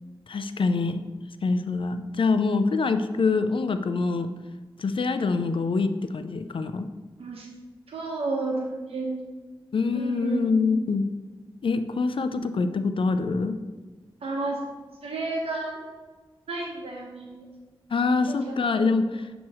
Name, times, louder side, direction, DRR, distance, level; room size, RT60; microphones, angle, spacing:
voice 1, 0.3-1.0 1.4-4.3 4.8-6.9 9.7-11.0 11.6-13.6 17.9-19.3, left 4 dB, 65° left, 10 dB, 0.4 m, -25 dB
voice 2, 7.9-9.1 9.9-10.4 14.2-14.6 15.0-15.8 16.5-17.4 18.3-18.9, right 3 dB, 85° right, -2 dB, 1.0 m, -32 dB
7.4 x 3.0 x 4.7 m, 1.3 s
cardioid pair, 45°, 10 cm